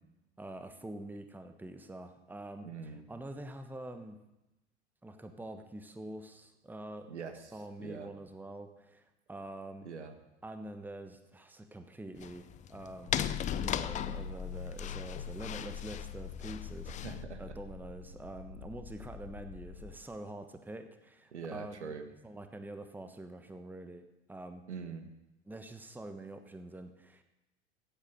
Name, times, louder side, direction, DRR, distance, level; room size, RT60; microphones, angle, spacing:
voice 1, 0.4-4.2 5.0-7.1 7.5-9.9 10.4-13.2 13.6-16.9 17.4-22.0 22.2-24.0 24.3-24.6 25.4-27.2, right 1 dB, 5° right, 7 dB, 1.2 m, -46 dB
voice 2, 2.6-3.0 7.1-7.5 7.8-8.1 9.8-10.1 17.0-17.4 21.3-22.0 24.7-25.1, right 5 dB, 80° right, 7 dB, 1.5 m, -43 dB
sound 1, 12.2-17.2, left 10 dB, 20° left, 0.5 m, -38 dB
sound 2, 13.1-19.9, left 7 dB, 55° left, 1.8 m, -43 dB
15.0 x 8.9 x 6.5 m, 0.94 s
figure-of-eight pair, 80°, 34 cm